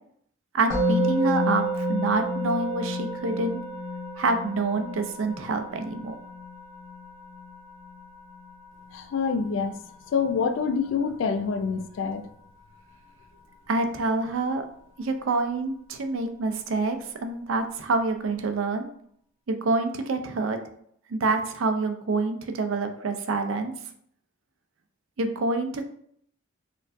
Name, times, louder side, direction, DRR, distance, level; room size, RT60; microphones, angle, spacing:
voice 1, 0.5-3.6 4.2-6.2 13.7-14.6 15.0-18.9 19.5-20.6 21.1-23.7 25.2-25.8, right 3 dB, 70° right, 0.4 m, -27 dB
Musical instrument, 0.7-11.8, equal, 15° right, 1.1 m, -32 dB
voice 2, 8.9-9.8 10.1-12.3, left 5 dB, 65° left, 0.3 m, -26 dB
4.4 x 2.5 x 2.5 m
head